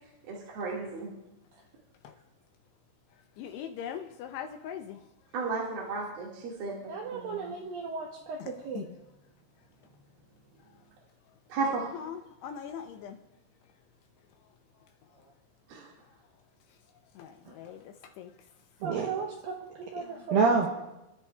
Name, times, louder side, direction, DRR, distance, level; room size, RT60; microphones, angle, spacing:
voice 1, 0.3-1.1 5.3-7.4 11.5-11.8 15.7-15.9, right 4 dB, 60° right, -5 dB, 3.4 m, -34 dB
voice 2, 3.4-5.0 8.4-8.9 11.9-13.2 17.2-17.8 18.2-18.3 20.0-20.1, left 8 dB, 80° left, 5 dB, 2.5 m, -41 dB
voice 3, 6.9-8.9 18.8-20.7, right 4 dB, 80° right, 0 dB, 2.1 m, -30 dB
27.5 x 13.0 x 2.3 m, 0.94 s
omnidirectional pair, 5.4 m